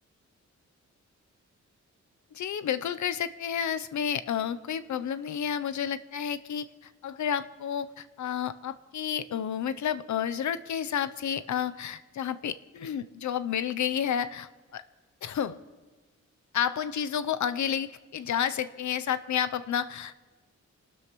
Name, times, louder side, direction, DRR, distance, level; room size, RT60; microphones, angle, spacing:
voice 1, 2.3-6.7 7.0-14.8 15.2-15.6 16.5-20.3, left 8 dB, 80° left, 13 dB, 0.6 m, -31 dB
26.5 x 12.5 x 3.1 m, 1.3 s
wide cardioid pair, 150°, 29 cm